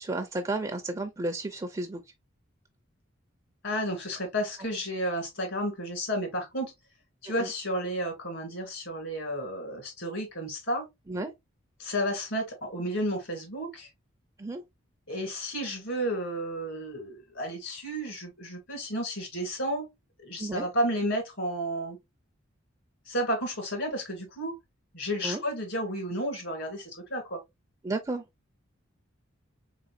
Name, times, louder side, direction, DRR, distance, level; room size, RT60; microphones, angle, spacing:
voice 1, 0.0-2.0 7.2-7.5 11.1-11.3 14.4-14.6 20.4-20.7 25.2-25.4 27.8-28.2, right 2 dB, 20° right, 0.5 m, -32 dB
voice 2, 3.6-6.7 7.2-10.8 11.8-13.9 15.1-19.9 20.2-22.0 23.1-24.6 24.9-27.4, equal, 70° left, 2.4 m, -32 dB
3.8 x 3.7 x 2.5 m
head